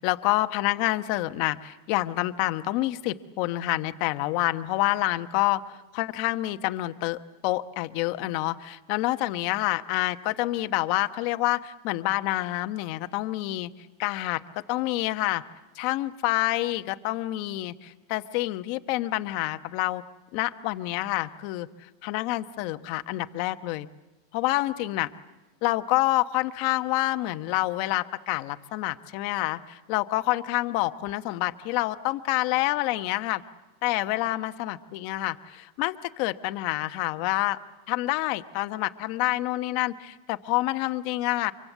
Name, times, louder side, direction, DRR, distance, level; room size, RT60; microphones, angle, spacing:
voice 1, 0.0-5.6 5.9-13.7 14.0-14.4 14.7-15.4 15.7-20.0 20.3-23.9 24.3-25.1 25.6-33.4 33.8-37.6 37.9-41.5, left 18 dB, 55° left, 9 dB, 1.0 m, -27 dB
25.0 x 24.0 x 8.2 m, 1.1 s
supercardioid pair, 135°, 0 cm